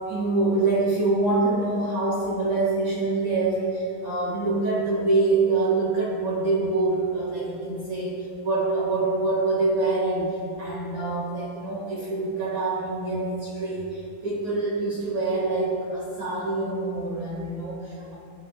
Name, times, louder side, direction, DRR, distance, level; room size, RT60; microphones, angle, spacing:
voice 1, 0.1-18.1, right 3 dB, 50° right, -4 dB, 2.3 m, -25 dB
22.5 x 13.5 x 2.4 m, 2.7 s
omnidirectional pair, 5.8 m